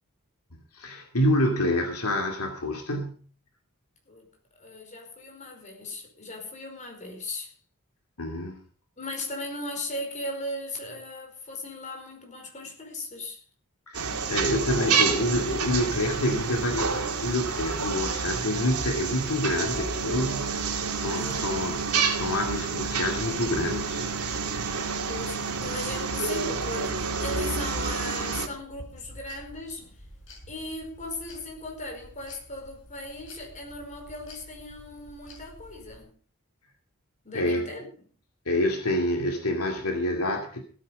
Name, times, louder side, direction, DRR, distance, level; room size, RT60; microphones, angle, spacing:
voice 1, 0.7-3.2 8.2-8.6 13.9-21.7 22.1-24.1 24.5-24.6 37.3-37.6 38.5-40.6, left 1 dB, 75° left, 2.6 m, -27 dB
voice 2, 4.5-7.6 9.0-13.4 21.1-21.7 25.1-30.0 30.5-36.1 37.2-37.9, left 2 dB, 35° left, 4.8 m, -37 dB
sound 1, 13.9-28.5, right 5 dB, 90° right, 2.5 m, -29 dB
sound 2, 18.9-36.0, left 1 dB, 60° left, 5.9 m, -50 dB
17.0 x 8.8 x 5.4 m
head